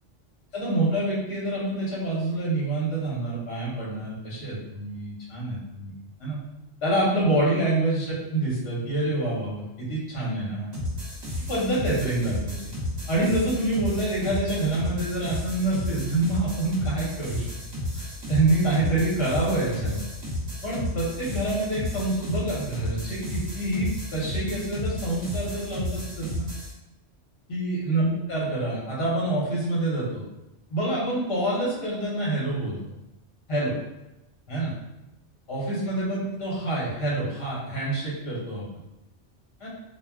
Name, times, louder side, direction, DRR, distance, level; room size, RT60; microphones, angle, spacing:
voice 1, 0.5-5.9 6.2-6.4 6.8-10.7 11.5-12.7 13.1-17.5 17.9-20.1 20.6-26.5 27.5-30.2 30.7-32.8 33.5-33.8 34.5-34.7 35.5-38.7 39.6-39.7, right 2 dB, 60° left, -6 dB, 1.1 m, -27 dB
sound 1, 10.7-26.7, left 1 dB, 40° right, 0.9 m, -33 dB
2.3 x 2.2 x 3.4 m, 0.94 s
omnidirectional pair, 1.2 m